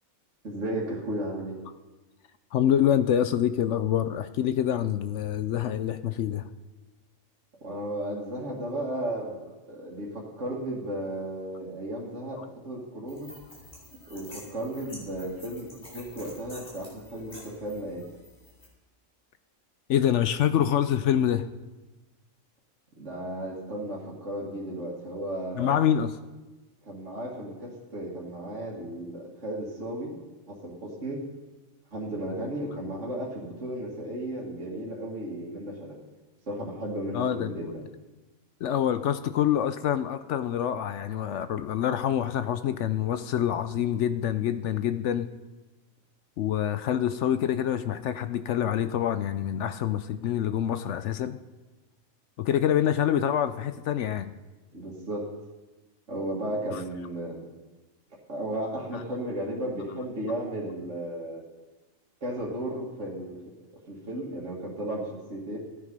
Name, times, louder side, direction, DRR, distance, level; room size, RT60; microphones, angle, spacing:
voice 1, 0.4-1.6 7.6-9.4 9.7-13.3 14.1-18.0 23.0-25.8 26.9-30.2 30.5-31.2 31.9-36.0 36.5-37.9 54.7-55.3 56.1-57.4 58.3-61.4 62.2-63.4 63.9-65.6, right 1 dB, 60° right, -5 dB, 2.3 m, -34 dB
voice 2, 2.5-6.5 19.9-21.5 25.6-26.1 37.1-37.8 38.6-45.3 46.4-51.4 52.4-54.3 56.7-56.8, left 10 dB, 70° left, 12 dB, 0.8 m, -26 dB
sound 1, 13.1-18.7, left 1 dB, 40° left, 4.2 m, -48 dB
14.5 x 9.9 x 5.3 m, 1.1 s
omnidirectional pair, 1.4 m